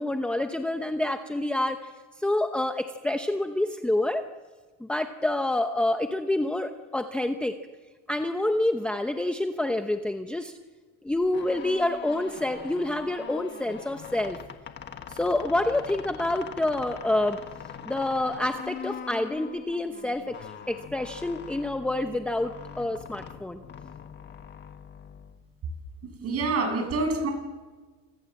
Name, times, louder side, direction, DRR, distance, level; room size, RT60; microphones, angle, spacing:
voice 1, 0.0-1.9 2.2-4.3 4.8-7.6 8.1-10.5 11.0-14.4 15.1-17.4 17.8-23.6, left 1 dB, 5° left, 6 dB, 0.8 m, -27 dB
sound 1, 11.2-25.8, left 8 dB, 30° left, 1.5 m, -43 dB
voice 2, 26.2-27.3, right 3 dB, 40° right, 5 dB, 7.5 m, -26 dB
29.5 x 26.5 x 7.5 m, 1.3 s
cardioid pair, 160°, 38 cm